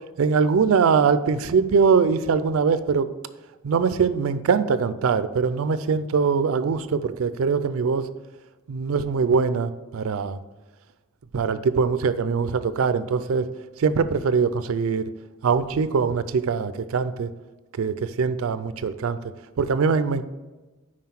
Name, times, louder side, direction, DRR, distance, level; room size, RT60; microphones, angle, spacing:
voice 1, 0.2-3.1 3.6-8.1 8.7-10.4 11.3-13.5 13.8-15.1 15.4-17.3 17.7-19.3 19.6-20.2, right 5 dB, 75° right, 13 dB, 0.4 m, -22 dB
5.7 x 4.9 x 5.8 m, 1.2 s
head